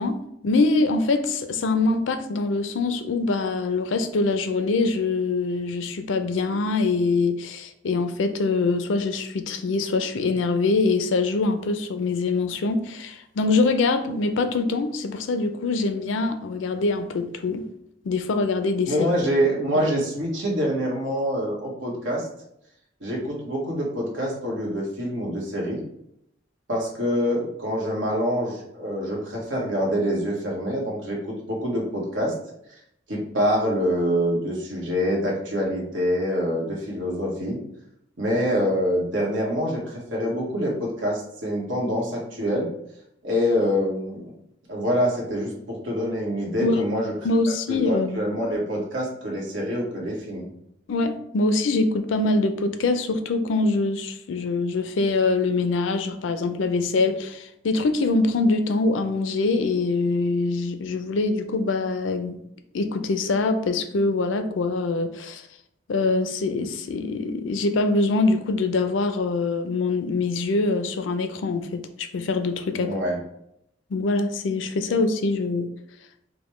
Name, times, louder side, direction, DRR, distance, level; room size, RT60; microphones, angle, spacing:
voice 1, 0.0-17.6 18.0-18.9 19.7-19.9 46.6-46.9 47.2-48.2 50.9-62.4 62.7-65.4 65.9-73.0 73.9-75.7, left 3 dB, 80° left, 9 dB, 0.4 m, -24 dB
voice 2, 18.9-22.3 23.0-25.8 26.7-32.3 33.1-37.6 38.2-42.7 43.2-44.3 44.7-47.1 47.7-50.5 72.7-73.2, equal, 85° right, -2 dB, 1.2 m, -25 dB
5.0 x 2.1 x 3.1 m, 0.76 s
head